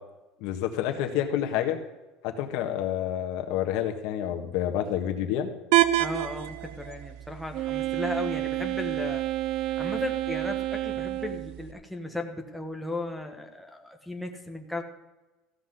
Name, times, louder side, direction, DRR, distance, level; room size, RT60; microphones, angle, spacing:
voice 1, 0.4-1.8 2.2-5.5, left 10 dB, 60° left, 5 dB, 1.6 m, -28 dB
sound 1, 5.7-11.7, right 14 dB, 70° right, 0.8 m, -30 dB
voice 2, 6.0-9.2 9.8-14.8, left 2 dB, ahead, 2 dB, 1.1 m, -36 dB
Wind instrument woodwind instrument, 7.5-11.6, right 16 dB, 40° right, 0.4 m, -30 dB
15.0 x 5.9 x 8.1 m, 1.1 s
cardioid pair, 175°, 0 cm